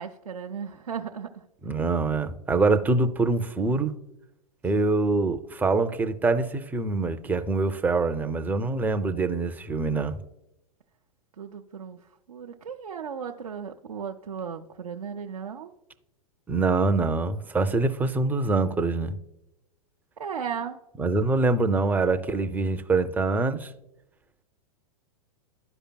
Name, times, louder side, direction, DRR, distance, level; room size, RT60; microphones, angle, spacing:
voice 1, 0.0-1.4 11.4-12.0 12.3-15.7 20.2-20.8, right 7 dB, 85° right, 0.6 m, -35 dB
voice 2, 1.6-3.9 4.6-10.2 16.5-19.1 21.0-23.7, right 3 dB, 10° right, 0.4 m, -24 dB
12.5 x 5.0 x 2.2 m
hypercardioid pair, 105°, 19 cm